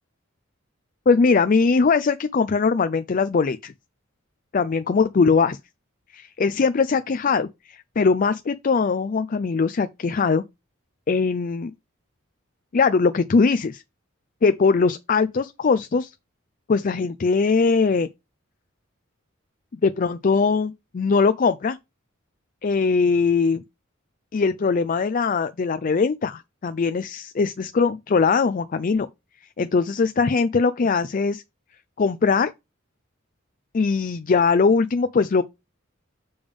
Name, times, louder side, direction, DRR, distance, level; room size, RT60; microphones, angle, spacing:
voice 1, 1.1-3.7 4.5-5.6 6.1-10.4 11.1-11.7 12.7-13.8 14.4-16.1 16.7-18.1 19.8-21.8 22.6-23.6 24.3-29.1 29.6-31.4 32.0-32.5 33.7-35.4, left 4 dB, 40° left, 0.4 m, -21 dB
7.0 x 3.5 x 5.2 m
head